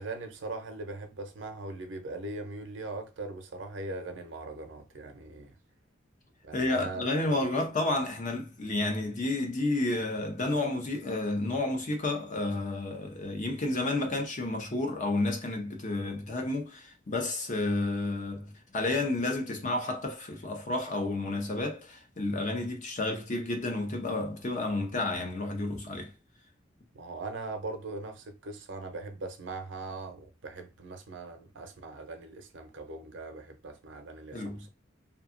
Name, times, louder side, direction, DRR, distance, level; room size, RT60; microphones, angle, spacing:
voice 1, 0.0-5.6 6.4-7.0 7.4-7.7 26.9-34.7, right 2 dB, 75° right, 0.6 m, -40 dB
voice 2, 6.5-26.1 34.3-34.7, left 2 dB, 40° left, 0.6 m, -31 dB
2.7 x 2.3 x 2.5 m
head